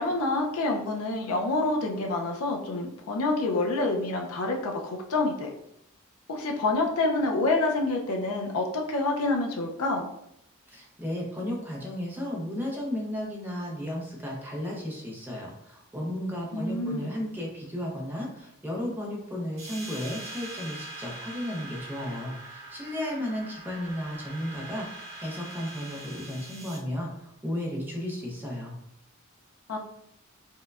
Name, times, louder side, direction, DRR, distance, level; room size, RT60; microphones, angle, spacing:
voice 1, 0.0-5.5 6.3-10.1 16.5-17.1 29.7-29.8, left 2 dB, 80° left, 1 dB, 0.5 m, -27 dB
voice 2, 10.7-27.1 27.4-28.8, equal, 10° right, -2 dB, 0.6 m, -34 dB
sound 1, 19.6-26.8, right 2 dB, 65° right, 1.5 m, -43 dB
4.4 x 2.2 x 2.4 m, 0.76 s
head